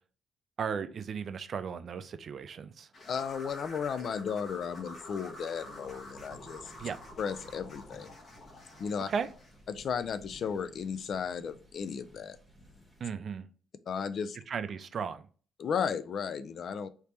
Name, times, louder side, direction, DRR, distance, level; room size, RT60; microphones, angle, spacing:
voice 1, 0.6-2.9 6.8-7.0 9.1-9.3 13.0-13.5 14.5-15.3, right 6 dB, 55° right, 0.4 m, -35 dB
sound 1, 2.9-9.6, left 1 dB, 45° left, 1.3 m, -48 dB
voice 2, 3.1-6.7 7.2-8.1 8.8-9.1 9.7-12.4 13.9-14.4 15.6-16.9, left 6 dB, 60° left, 0.3 m, -34 dB
sound 2, 5.5-13.1, right 1 dB, 10° right, 1.4 m, -56 dB
3.3 x 2.8 x 3.0 m
cardioid pair, 90°, 0 cm